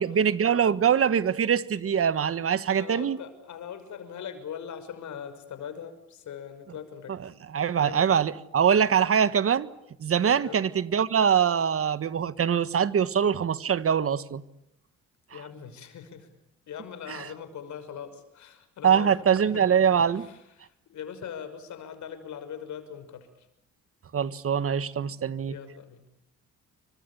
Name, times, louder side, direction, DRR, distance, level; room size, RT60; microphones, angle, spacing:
voice 1, 0.0-3.2 7.5-9.7 10.0-14.4 17.1-17.2 18.8-20.3 24.1-25.5, right 7 dB, 50° right, 1.6 m, -23 dB
voice 2, 2.7-7.2 7.6-8.2 10.4-10.6 15.3-16.3 16.7-19.2 19.5-19.8 20.1-23.5 25.0-25.1 25.5-26.1, left 8 dB, 70° left, 6.1 m, -41 dB
29.5 x 25.0 x 7.1 m
cardioid pair, 90°, 30 cm